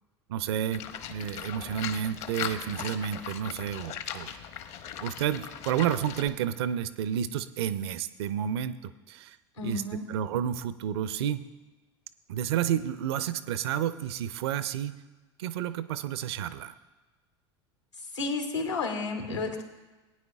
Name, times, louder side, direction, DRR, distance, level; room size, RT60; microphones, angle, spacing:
voice 1, 0.3-0.8 1.1-4.3 5.0-9.4 9.6-9.8 10.1-11.5 12.3-15.0 15.4-16.7, right 9 dB, 65° right, 14 dB, 0.6 m, -30 dB
Livestock farm animals working animals, 0.7-6.3, left 9 dB, 50° left, 0.9 m, -39 dB
voice 2, 9.6-10.1 18.1-19.6, left 3 dB, 90° left, 1 dB, 2.1 m, -31 dB
19.5 x 9.5 x 2.4 m, 1.2 s
figure-of-eight pair, 75°, 14 cm